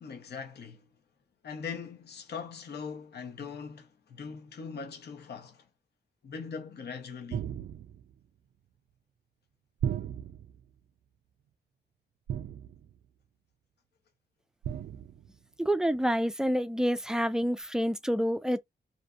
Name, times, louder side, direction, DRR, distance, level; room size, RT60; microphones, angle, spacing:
voice 1, 0.0-0.9 1.4-5.7 6.2-7.5, left 5 dB, 65° left, 0.8 m, -41 dB
sound 1, 7.3-8.1 9.8-10.6 12.3-13.0 14.6-15.3, right 9 dB, 70° right, 0.4 m, -35 dB
voice 2, 15.6-18.6, equal, 5° right, 0.4 m, -28 dB
2.5 x 2.5 x 2.3 m
cardioid pair, 60°, 18 cm